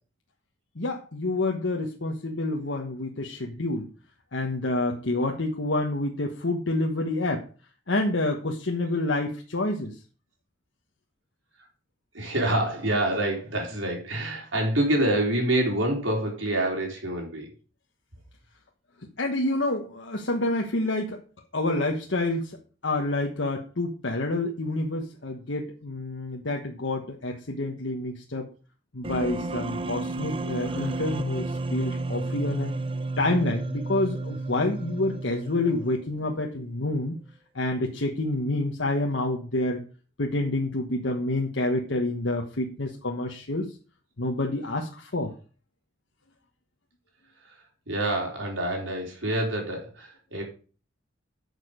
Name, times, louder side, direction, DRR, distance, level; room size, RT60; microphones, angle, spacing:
voice 1, 0.7-3.9 4.3-7.4 7.9-10.0 19.2-21.2 21.5-22.6 22.8-28.5 28.9-32.7 33.2-37.2 37.5-39.8 40.2-43.7 44.2-45.3, left 2 dB, 70° left, 1 dB, 1.2 m, -28 dB
voice 2, 12.1-17.5 30.7-30.9 47.4-47.5 47.9-50.4, right 1 dB, 90° right, 0 dB, 4.2 m, -27 dB
sound 1, 29.0-36.1, right 2 dB, 30° right, 0.5 m, -32 dB
10.5 x 6.7 x 5.1 m, 0.38 s
head